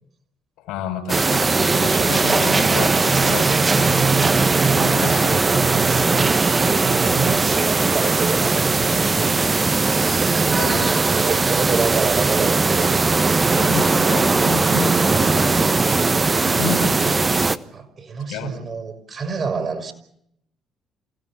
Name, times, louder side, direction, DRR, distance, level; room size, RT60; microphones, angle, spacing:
voice 1, 0.6-3.5 4.7-5.9 10.6-11.2 13.6-16.1 16.4-17.3 18.3-18.7, left 6 dB, 70° left, 4.3 m, -31 dB
sound 1, 1.1-17.6, right 3 dB, 30° right, 1.2 m, -19 dB
voice 2, 5.7-9.4 9.7-12.9 17.7-19.9, right 5 dB, 45° right, 5.4 m, -28 dB
28.5 x 17.0 x 7.3 m
hypercardioid pair, 50°, 0 cm